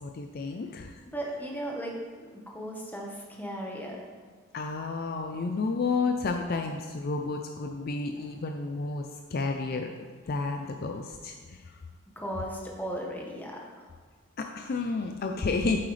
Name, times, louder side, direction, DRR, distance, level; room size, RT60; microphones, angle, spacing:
voice 1, 0.0-1.0 4.5-9.9 10.2-11.7 14.4-15.8, left 4 dB, 45° left, 4 dB, 0.4 m, -31 dB
voice 2, 1.1-4.0 12.2-13.6, right 1 dB, 10° left, -1 dB, 1.2 m, -36 dB
8.6 x 7.8 x 3.3 m, 1.6 s
head